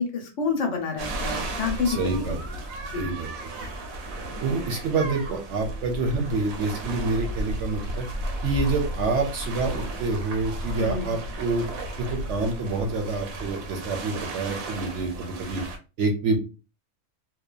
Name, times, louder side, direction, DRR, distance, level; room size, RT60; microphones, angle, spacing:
voice 1, 0.0-2.4 2.9-3.1 3.5-3.8 10.8-11.1, left 5 dB, 65° left, 3 dB, 1.0 m, -28 dB
sound 1, 1.0-15.8, right 1 dB, 90° right, 1.1 m, -34 dB
voice 2, 1.8-2.4 2.9-3.3 3.6-3.7 4.4-8.0 8.4-11.6 12.0-15.6 16.0-16.4, right 3 dB, 65° right, 3 dB, 0.9 m, -27 dB
2.7 x 2.2 x 2.2 m, 0.31 s
omnidirectional pair, 1.4 m